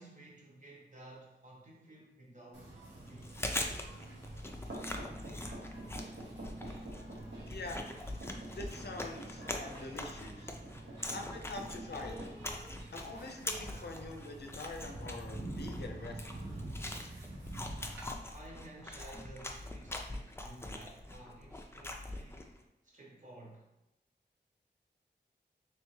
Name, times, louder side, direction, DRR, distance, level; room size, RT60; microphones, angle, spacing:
voice 1, 0.0-3.4 18.3-22.5 22.8-23.7, right 1 dB, 45° right, -3 dB, 1.1 m, -54 dB
sound 1, 2.5-18.0, right 1 dB, 85° right, 1.2 m, -46 dB
Chewing mastication, 3.1-22.6, left 1 dB, 15° left, 0.4 m, -43 dB
voice 2, 7.4-7.9 8.6-10.6 11.1-12.4 12.9-16.5, left 2 dB, 65° left, 3 dB, 0.5 m, -44 dB
3.4 x 3.1 x 3.1 m, 0.89 s
wide cardioid pair, 85°, 18 cm